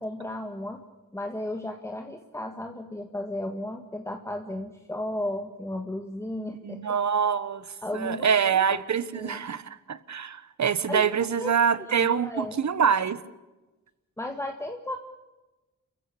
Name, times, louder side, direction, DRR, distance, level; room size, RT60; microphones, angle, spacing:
voice 1, 0.0-0.8 1.1-7.0 7.8-8.3 9.1-9.4 10.9-11.1 11.4-11.5 11.8-12.5 14.2-15.0, left 1 dB, 10° left, 4 dB, 1.8 m, -34 dB
voice 2, 6.6-7.7 7.9-13.2, right 7 dB, 60° right, 16 dB, 1.3 m, -25 dB
28.5 x 15.0 x 8.6 m, 1.1 s
wide cardioid pair, 100°, 32 cm